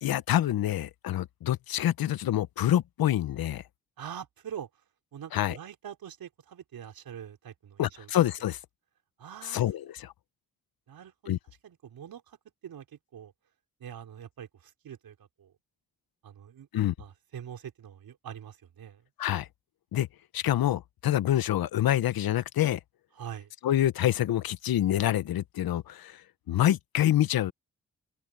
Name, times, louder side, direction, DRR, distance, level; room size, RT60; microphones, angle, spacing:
voice 1, 0.0-3.6 5.3-5.6 7.8-8.6 9.4-10.1 11.3-11.4 16.7-16.9 19.2-19.5 19.9-20.1 20.3-22.8 23.6-26.2 26.5-27.5, left 12 dB, 75° left, 1.1 m, -26 dB
voice 2, 4.0-4.7 5.1-8.1 9.2-9.6 10.9-11.3 11.6-12.4 12.6-12.9 13.1-13.3 13.8-15.5 16.2-16.7 17.0-19.0 23.2-23.5, right 9 dB, 75° right, 4.3 m, -44 dB
supercardioid pair, 50°, 36 cm